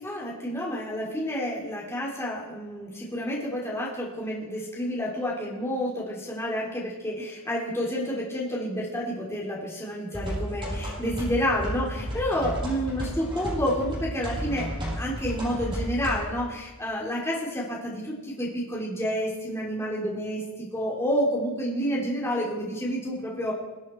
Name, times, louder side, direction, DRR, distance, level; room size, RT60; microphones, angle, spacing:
voice 1, 0.0-23.5, equal, 10° left, -5 dB, 2.8 m, -29 dB
sound 1, 10.1-16.2, equal, 25° right, 5.0 m, -33 dB
22.0 x 7.9 x 4.4 m, 1.2 s
head